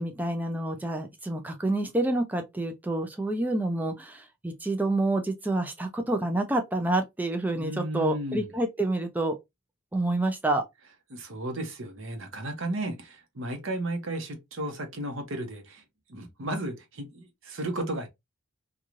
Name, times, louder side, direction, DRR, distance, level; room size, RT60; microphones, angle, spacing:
voice 1, 0.0-9.4 9.9-10.6, right 2 dB, 10° right, 0.3 m, -28 dB
voice 2, 7.5-8.5 11.1-15.8 16.1-18.1, right 1 dB, 65° right, 0.8 m, -34 dB
3.0 x 2.3 x 2.4 m
head